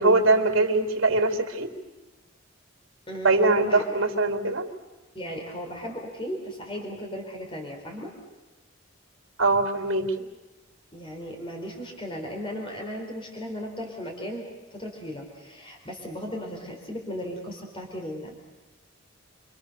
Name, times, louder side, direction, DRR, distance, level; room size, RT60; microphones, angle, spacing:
voice 1, 0.0-1.7 3.2-4.7 9.4-10.3, right 2 dB, 80° right, 4 dB, 3.4 m, -22 dB
voice 2, 3.1-4.0 5.1-8.1 10.9-14.4 14.7-18.4, equal, 25° left, 1 dB, 4.4 m, -36 dB
29.0 x 25.0 x 6.8 m, 1.1 s
head